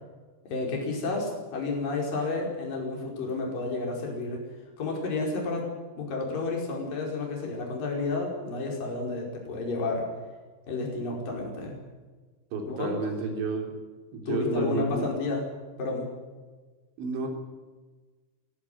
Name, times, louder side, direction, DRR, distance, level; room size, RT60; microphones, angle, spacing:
voice 1, 0.5-4.4 4.8-5.7 6.0-10.1 10.7-11.7 12.7-13.0 14.3-15.4 15.8-16.1, left 3 dB, 45° left, 0 dB, 6.5 m, -31 dB
voice 2, 12.5-13.7 14.1-15.1 17.0-17.3, right 3 dB, 75° right, 3 dB, 5.8 m, -30 dB
20.5 x 17.5 x 9.4 m, 1.3 s
omnidirectional pair, 5.4 m